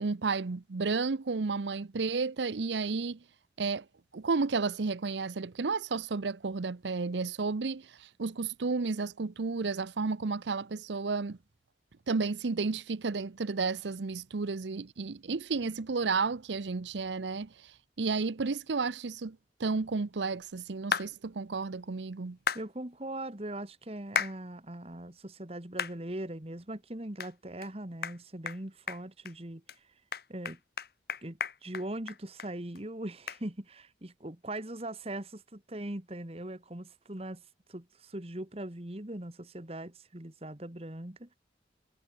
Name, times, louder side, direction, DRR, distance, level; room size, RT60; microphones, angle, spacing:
voice 1, 0.0-3.2 3.6-3.9 4.1-11.4 12.1-22.4, right 4 dB, 85° right, 0.7 m, -32 dB
sound 1, 20.9-21.1 22.5-22.6 24.2-24.4 24.9-25.0 25.8-26.0 26.4-26.5 27.2-27.3 27.6-27.7 28.0-28.2 28.5-28.6 28.9-29.3 29.7-29.8 30.1-32.5 32.8-32.9 33.3-33.4, left 6 dB, 60° left, 1.0 m, -33 dB
voice 2, 22.5-29.6 30.3-30.6 31.2-37.4 37.7-41.3, right 1 dB, 35° right, 1.8 m, -40 dB
head